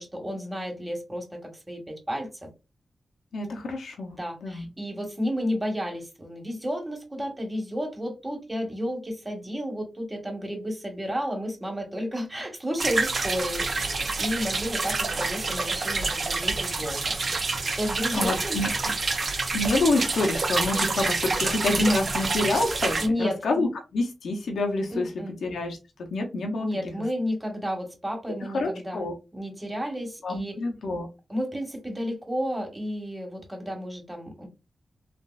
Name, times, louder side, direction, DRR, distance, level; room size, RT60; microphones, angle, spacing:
voice 1, 0.0-2.5 4.1-17.2 17.8-18.6 23.0-23.4 24.9-25.4 26.6-30.6 31.3-34.5, equal, 20° right, 1.5 m, -32 dB
voice 2, 3.3-4.7 18.1-18.7 19.5-25.1 25.4-25.8 26.1-26.9 28.4-29.1 30.2-31.1, left 2 dB, 85° left, 0.8 m, -27 dB
sound 1, 12.8-23.1, right 3 dB, 60° right, 0.7 m, -28 dB
3.4 x 2.5 x 2.4 m
cardioid pair, 45°, 0 cm